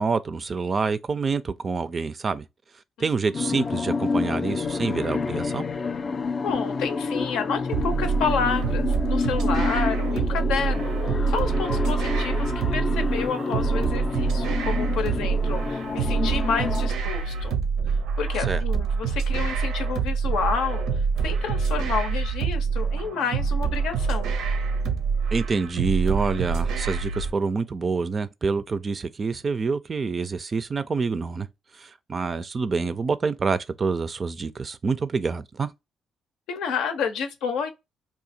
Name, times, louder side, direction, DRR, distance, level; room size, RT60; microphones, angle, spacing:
voice 1, 0.0-2.4 3.0-5.6 18.5-18.6 25.3-31.5 31.7-35.7, right 4 dB, 35° right, 0.3 m, -27 dB
sound 1, 3.3-16.9, left 4 dB, 40° left, 0.3 m, -29 dB
voice 2, 6.4-11.0 11.3-17.6 18.2-20.8 21.2-24.3 36.5-37.7, left 6 dB, 90° left, 0.6 m, -30 dB
sound 2, 7.7-27.3, right 5 dB, 90° right, 0.6 m, -26 dB
2.8 x 2.4 x 4.1 m
cardioid pair, 90°, 0 cm